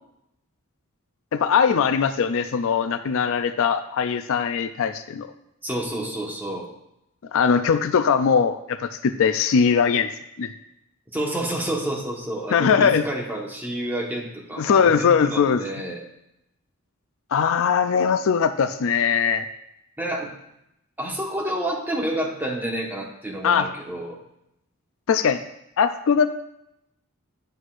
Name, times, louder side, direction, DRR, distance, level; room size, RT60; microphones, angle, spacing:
voice 1, 1.3-5.3 7.3-10.1 10.4-10.5 12.5-13.1 14.6-15.6 17.3-19.5 23.4-23.7 25.1-25.4 25.8-26.3, left 6 dB, 65° left, 10 dB, 0.4 m, -20 dB
voice 2, 5.6-6.6 11.1-16.0 20.0-20.3 21.0-24.2, right 1 dB, 10° right, -1 dB, 1.3 m, -29 dB
8.1 x 7.8 x 2.5 m, 0.82 s
head